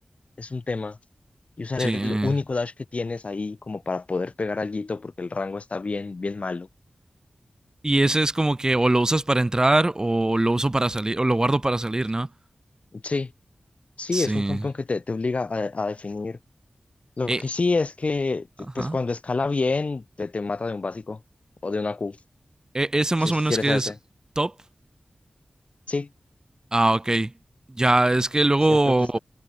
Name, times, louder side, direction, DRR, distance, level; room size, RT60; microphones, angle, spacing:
voice 1, 0.4-1.0 1.6-6.7 12.9-13.3 14.0-16.4 17.2-21.2 21.6-22.2 23.2-23.9 25.9-26.1 28.7-28.8, left 3 dB, 55° left, 4.7 m, -28 dB
voice 2, 1.8-2.4 7.8-12.3 14.1-14.6 17.3-17.4 18.8-19.0 22.7-23.9 24.4-24.5 26.7-27.3 27.7-29.2, right 2 dB, 25° right, 2.1 m, -22 dB
wide cardioid pair, 80°, 3 cm